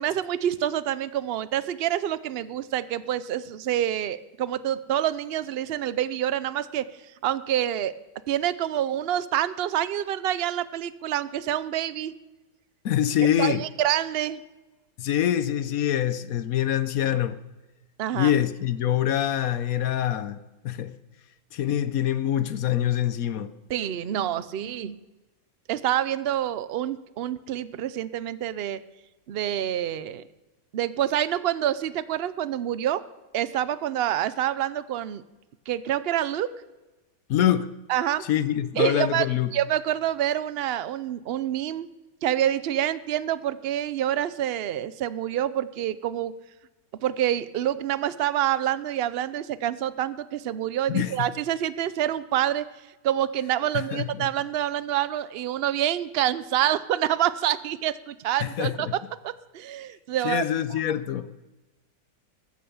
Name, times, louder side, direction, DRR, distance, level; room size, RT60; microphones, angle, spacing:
voice 1, 0.0-6.8 7.2-7.9 8.3-12.1 13.4-14.4 18.0-18.3 23.7-25.0 25.7-28.8 29.3-30.2 30.7-33.0 33.3-35.2 35.7-36.5 37.9-38.2 38.8-39.3 39.5-41.9 42.2-46.3 47.0-52.7 53.0-58.9 59.2-60.4, right 11 dB, 70° right, 0.5 m, -27 dB
voice 2, 12.8-13.6 15.0-17.4 18.1-20.4 20.6-20.9 21.5-23.5 37.3-37.7 38.3-39.5 50.9-51.3 53.7-54.3 58.4-58.9 60.2-61.4, left 11 dB, 65° left, 1.1 m, -25 dB
14.5 x 8.7 x 7.1 m
omnidirectional pair, 1.8 m